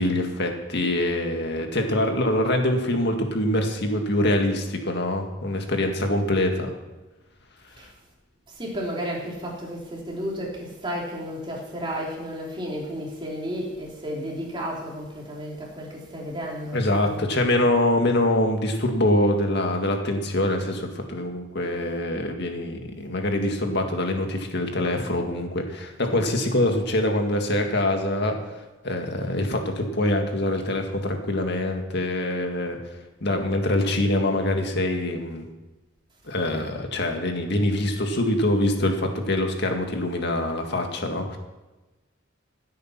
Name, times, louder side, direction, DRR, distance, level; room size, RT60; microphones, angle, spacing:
voice 1, 0.0-6.7 16.7-28.4 28.8-32.8 33.2-35.5 36.3-41.4, left 1 dB, 60° left, 4 dB, 1.9 m, -24 dB
voice 2, 8.5-17.2 26.1-26.2, equal, 25° right, -3 dB, 3.4 m, -33 dB
16.0 x 8.8 x 5.9 m, 1.1 s
head